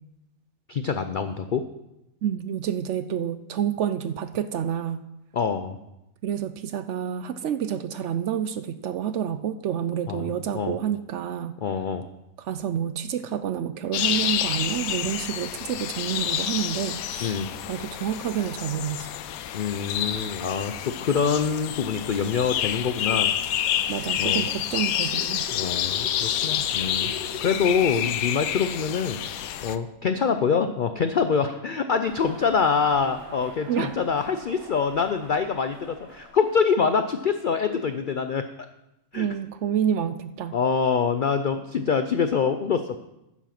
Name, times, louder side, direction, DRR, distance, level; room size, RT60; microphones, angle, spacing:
voice 1, 0.7-1.6 5.3-5.8 10.1-10.3 10.5-10.8 11.6-12.0 17.2-17.5 19.5-23.3 24.2-24.4 25.5-29.2 29.6-38.4 39.1-39.3 40.5-43.0, left 6 dB, 70° left, 9 dB, 0.4 m, -25 dB
voice 2, 2.2-5.0 6.2-11.6 12.4-17.4 17.7-19.1 23.9-25.4 33.7-33.9 39.1-40.6, right 9 dB, 65° right, 12 dB, 0.8 m, -28 dB
sound 1, 13.9-29.8, left 10 dB, 85° left, 1.1 m, -28 dB
sound 2, 22.6-24.4 25.0-28.2, left 4 dB, 40° left, 1.6 m, -42 dB
sound 3, 32.0-38.2, right 1 dB, 85° right, 3.6 m, -47 dB
9.9 x 7.2 x 5.9 m, 0.90 s
omnidirectional pair, 1.5 m